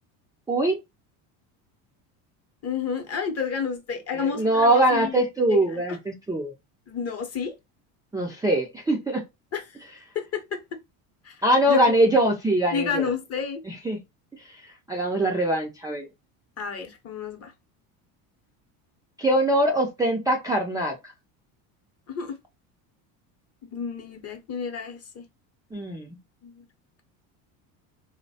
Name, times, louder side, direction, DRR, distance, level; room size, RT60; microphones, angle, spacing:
voice 1, 2.6-6.0 6.9-7.5 9.5-9.8 10.1-10.6 11.2-11.9 12.7-13.6 16.6-17.5 22.1-22.3 23.6-25.3 26.4-26.6, left 6 dB, 35° left, 0.8 m, -31 dB
voice 2, 4.1-6.5 8.1-9.2 11.4-13.1 13.7-14.0 14.9-16.1 19.2-20.9 25.7-26.2, right 1 dB, 10° right, 0.4 m, -22 dB
3.0 x 2.1 x 2.6 m
supercardioid pair, 110°, 40 cm